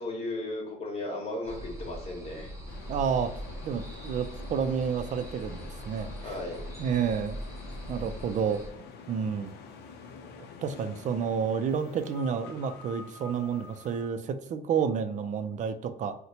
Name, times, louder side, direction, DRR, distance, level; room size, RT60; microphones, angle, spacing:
voice 1, 0.0-2.5 6.2-6.6, left 2 dB, 35° left, 0 dB, 1.2 m, -35 dB
sound 1, 1.4-8.7, equal, 15° right, 0.9 m, -41 dB
sound 2, 2.7-14.1, left 5 dB, 80° left, 0.5 m, -47 dB
voice 2, 2.9-3.3 3.6-6.1 6.8-7.4 7.9-8.6 9.1-9.5 10.6-16.2, right 7 dB, 50° right, 10 dB, 0.4 m, -30 dB
2.7 x 2.1 x 4.0 m, 0.77 s
cardioid pair, 110°, 17 cm